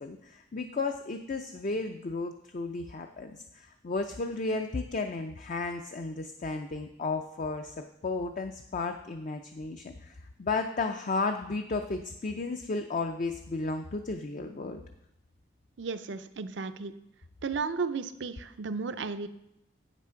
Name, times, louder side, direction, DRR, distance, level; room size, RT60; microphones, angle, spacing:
voice 1, 0.0-14.8, left 3 dB, 40° left, 5 dB, 0.5 m, -33 dB
voice 2, 15.8-16.9 17.4-19.3, right 4 dB, 65° right, 12 dB, 0.5 m, -34 dB
8.5 x 6.0 x 5.7 m, 0.81 s
head